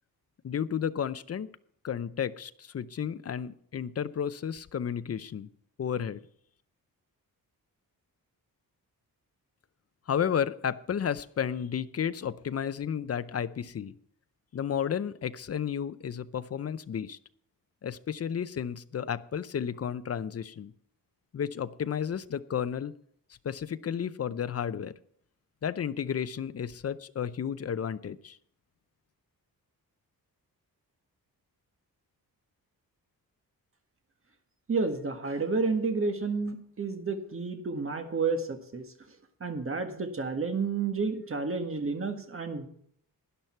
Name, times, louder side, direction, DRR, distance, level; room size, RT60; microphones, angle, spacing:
voice 1, 0.4-1.5 1.8-5.5 5.8-6.2 10.1-13.9 14.5-17.2 17.8-20.7 21.3-23.0 23.4-24.9 25.6-28.4, left 8 dB, 40° left, 14 dB, 0.6 m, -32 dB
voice 2, 34.7-38.8 39.4-42.7, right 4 dB, 35° right, 6 dB, 1.7 m, -30 dB
12.5 x 10.5 x 4.4 m, 0.65 s
wide cardioid pair, 150°, 36 cm